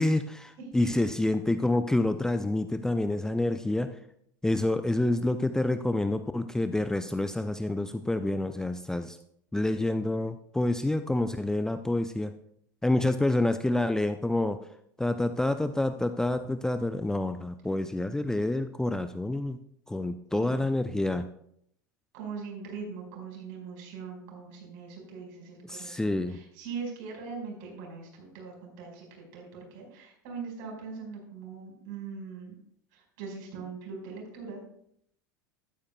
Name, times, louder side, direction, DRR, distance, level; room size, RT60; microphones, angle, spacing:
voice 1, 0.0-3.9 4.4-9.2 9.5-12.3 12.8-14.6 15.0-19.6 19.9-21.3 25.7-26.4, left 2 dB, 5° left, 9 dB, 0.5 m, -28 dB
voice 2, 20.3-20.7 22.1-32.5 32.9-34.6, right 5 dB, 55° right, 1 dB, 5.0 m, -41 dB
13.5 x 12.0 x 2.3 m, 0.70 s
figure-of-eight pair, 80°, 10 cm